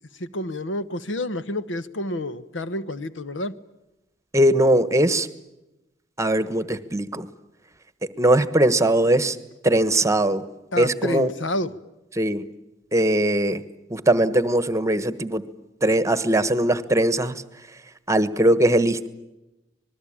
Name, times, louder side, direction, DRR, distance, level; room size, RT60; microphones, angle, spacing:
voice 1, 0.2-3.5 10.7-11.8, left 1 dB, 80° left, 13 dB, 1.1 m, -29 dB
voice 2, 4.3-5.3 6.2-7.3 8.2-9.4 9.6-10.5 10.8-11.3 12.1-12.4 12.9-13.6 13.9-15.4 15.8-17.4 18.1-19.1, right 1 dB, 15° right, 13 dB, 1.2 m, -20 dB
26.0 x 20.5 x 8.8 m, 0.98 s
head